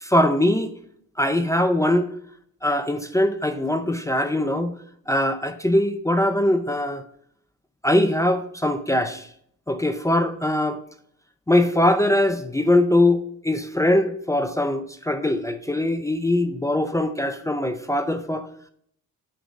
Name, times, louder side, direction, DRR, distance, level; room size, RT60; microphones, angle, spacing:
voice 1, 0.0-0.7 1.2-2.1 2.6-4.7 5.1-7.0 7.8-9.3 9.7-10.8 11.5-18.5, left 1 dB, 10° left, 7 dB, 0.4 m, -21 dB
7.9 x 3.9 x 5.1 m, 0.67 s
cardioid pair, 115°, 35 cm